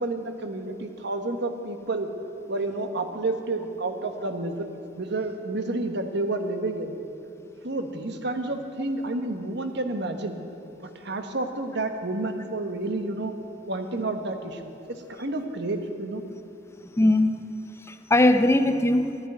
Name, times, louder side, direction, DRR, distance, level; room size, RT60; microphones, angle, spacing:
voice 1, 0.0-2.1 2.5-4.7 5.0-6.9 7.6-10.3 11.0-13.3 13.7-14.7 15.1-16.2, right 2 dB, 65° right, 6 dB, 1.3 m, -30 dB
voice 2, 16.8-17.5 17.8-19.2, left 1 dB, 15° left, 9 dB, 0.5 m, -21 dB
12.0 x 10.5 x 9.8 m, 3.0 s
head